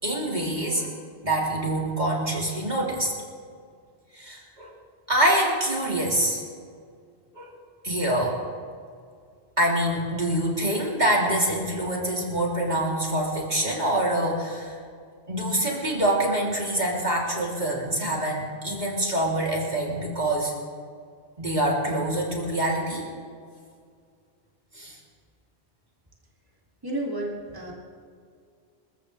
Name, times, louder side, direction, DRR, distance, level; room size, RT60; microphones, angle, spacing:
voice 1, 0.0-0.9 1.2-3.1 4.1-4.7 5.1-6.4 7.3-7.5 7.8-8.4 9.6-14.8 15.3-20.5 21.4-23.1 24.7-25.0, right 1 dB, 40° right, -3 dB, 3.6 m, -25 dB
voice 2, 26.8-27.7, right 1 dB, 20° right, -4 dB, 2.8 m, -31 dB
28.0 x 15.0 x 3.4 m, 2.2 s
omnidirectional pair, 1.1 m